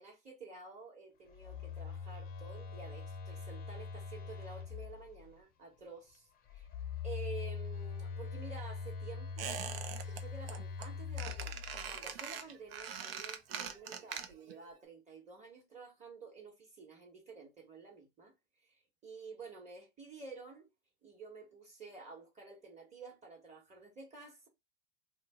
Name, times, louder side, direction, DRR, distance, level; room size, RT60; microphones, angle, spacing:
voice 1, 0.0-6.7 7.0-11.6 11.9-18.3 18.7-20.7 21.0-24.5, right 4 dB, 25° right, 1.2 m, -51 dB
Telephone, 1.3-5.3 6.5-12.2, left 6 dB, 30° left, 0.6 m, -42 dB
Squeak, 9.4-10.2 10.5-10.9 11.2-14.6 14.8-14.9, right 8 dB, 70° right, 0.6 m, -42 dB
2.5 x 2.0 x 3.5 m
hypercardioid pair, 90°, 31 cm